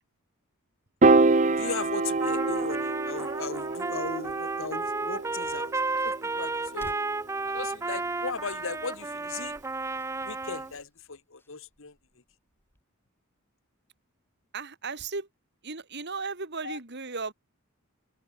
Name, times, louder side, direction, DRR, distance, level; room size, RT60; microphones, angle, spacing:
Piano, 1.0-7.4, right 3 dB, 35° right, 0.8 m, -26 dB
voice 1, 1.5-7.0 7.4-9.6 10.2-11.9 16.6-16.8, left 4 dB, 60° left, 1.5 m, -37 dB
Trumpet, 2.2-10.7, right 3 dB, 15° right, 0.4 m, -33 dB
sound 1, 9.1-12.8, equal, 10° left, 7.1 m, -57 dB
voice 2, 14.5-15.3 15.6-17.3, right 4 dB, 50° right, 2.5 m, -35 dB
head